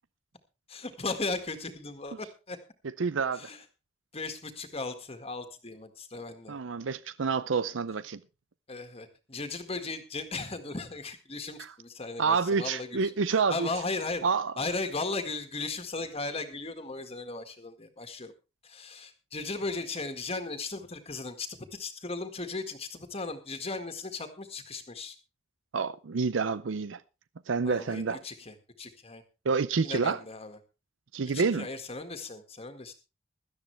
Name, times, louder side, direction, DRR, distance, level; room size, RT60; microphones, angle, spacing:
voice 1, 0.7-2.6 3.3-3.6 4.1-6.5 8.7-13.1 13.5-14.2 14.6-18.3 18.6-25.1 27.6-29.2 29.8-30.6 31.3-32.9, left 3 dB, 30° left, 1.8 m, -36 dB
voice 2, 3.0-3.5 6.5-8.2 11.6-11.7 12.2-13.7 14.2-14.5 25.7-27.0 27.5-28.2 29.5-30.2 31.1-31.7, right 5 dB, 90° right, 0.6 m, -28 dB
17.0 x 12.5 x 3.3 m
head